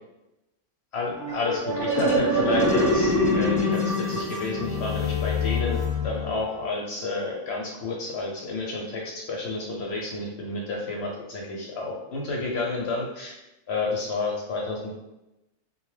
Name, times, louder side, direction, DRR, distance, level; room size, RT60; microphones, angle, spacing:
voice 1, 0.9-13.3 13.7-14.9, left 3 dB, 65° left, -1 dB, 0.7 m, -30 dB
sound 1, 1.2-6.6, left 1 dB, 5° left, 0.7 m, -25 dB
2.5 x 2.2 x 3.1 m, 0.92 s
omnidirectional pair, 1.4 m